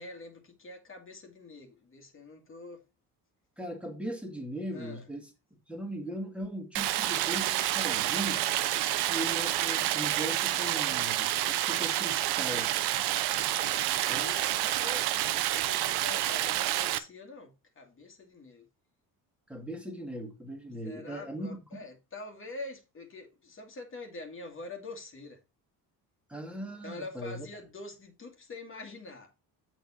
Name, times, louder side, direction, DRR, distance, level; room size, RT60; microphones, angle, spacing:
voice 1, 0.0-2.8 4.7-5.0 13.6-18.7 20.8-25.4 26.8-29.3, left 3 dB, 30° left, 2.1 m, -45 dB
voice 2, 3.6-5.3 5.7-8.4 9.1-12.7 14.1-14.3 19.5-21.5 26.3-27.5, right 1 dB, 5° right, 2.1 m, -39 dB
Stream, 6.7-17.0, right 14 dB, 85° right, 0.8 m, -29 dB
7.1 x 6.0 x 4.2 m
cardioid pair, 110°, 38 cm